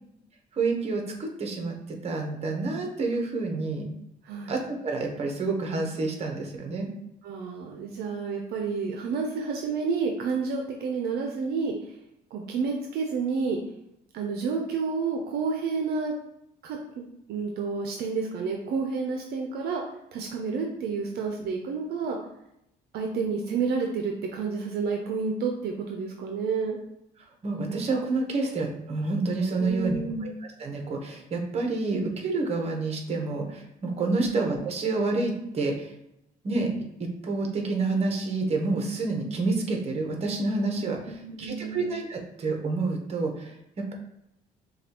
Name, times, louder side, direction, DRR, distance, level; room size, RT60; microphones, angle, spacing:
voice 1, 0.5-3.9 4.5-6.9 27.4-30.0 30.2-30.3 30.6-35.9 36.4-36.7 37.0-43.9, right 3 dB, 35° right, 2 dB, 0.9 m, -28 dB
voice 2, 7.2-11.7 12.3-13.6 14.1-16.1 16.6-16.8 17.3-19.8 20.1-22.2 22.9-26.8 29.6-30.3 34.2-34.3 41.0-42.0, right 5 dB, 70° right, 1 dB, 0.6 m, -30 dB
6.5 x 2.3 x 2.9 m, 0.81 s
cardioid pair, 110°, 17 cm